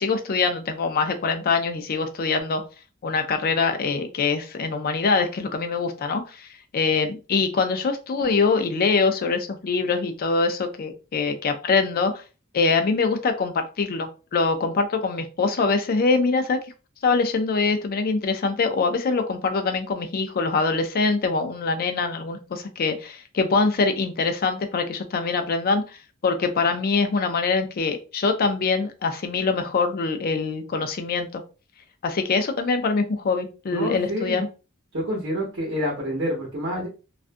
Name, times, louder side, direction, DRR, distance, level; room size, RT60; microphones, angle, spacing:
voice 1, 0.0-2.6 3.0-6.5 6.7-12.2 12.5-16.6 17.0-26.0 26.2-31.4 32.0-34.5, left 4 dB, 45° left, 7 dB, 0.4 m, -24 dB
voice 2, 33.7-34.4 34.9-36.9, equal, 60° right, -1 dB, 0.9 m, -27 dB
2.4 x 2.2 x 2.5 m, 0.32 s
head